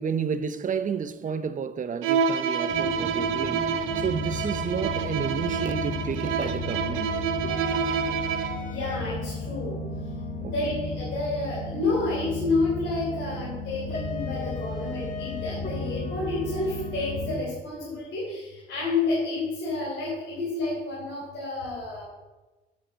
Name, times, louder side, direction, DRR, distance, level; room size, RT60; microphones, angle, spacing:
voice 1, 0.0-7.2 10.4-10.8, right 6 dB, 40° right, 0.7 m, -31 dB
Bowed string instrument, 2.0-8.7, right 7 dB, 85° right, 0.7 m, -28 dB
sound 1, 2.7-17.4, left 2 dB, 40° left, 1.5 m, -34 dB
voice 2, 8.7-9.7 10.5-22.0, left 3 dB, 80° left, 3.3 m, -30 dB
7.6 x 5.7 x 7.4 m
cardioid pair, 90°, 20 cm